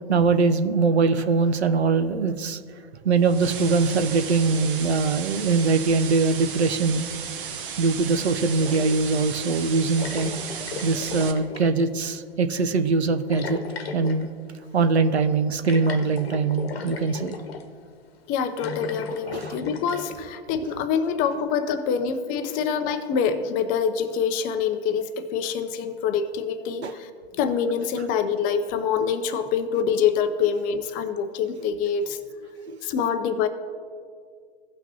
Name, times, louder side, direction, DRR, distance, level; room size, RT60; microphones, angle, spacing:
voice 1, 0.1-2.6 3.0-7.1 7.8-10.3 10.8-13.6 13.9-14.3 14.7-17.4 19.3-19.6 20.6-20.7 21.3-21.4 26.8-27.0 28.0-28.1 29.0-29.1 32.7-32.8, right 4 dB, 85° right, 9 dB, 0.8 m, -22 dB
sound 1, 3.2-11.3, right 7 dB, 55° right, 1.0 m, -35 dB
sound 2, 8.6-9.2 10.0-11.9 13.3-14.3 15.6-17.7 18.5-20.2, left 5 dB, 70° left, 1.1 m, -35 dB
voice 2, 18.3-27.1 27.4-32.2 32.8-33.5, left 7 dB, 25° left, 9 dB, 0.6 m, -25 dB
16.5 x 5.8 x 2.8 m, 2.1 s
hypercardioid pair, 115°, 32 cm